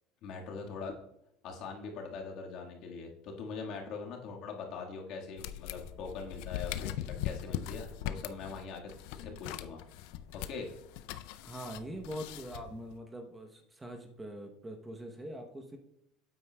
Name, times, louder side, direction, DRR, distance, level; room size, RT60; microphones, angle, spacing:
voice 1, 0.2-0.9 1.4-8.8 9.1-9.8 10.5-10.7, left 5 dB, 55° left, 1 dB, 1.6 m, -42 dB
sound 1, 5.4-13.0, left 12 dB, 70° left, 0.4 m, -41 dB
voice 2, 11.4-15.8, equal, 10° right, 4 dB, 0.8 m, -43 dB
9.0 x 8.5 x 2.2 m, 0.80 s
supercardioid pair, 135°, 0 cm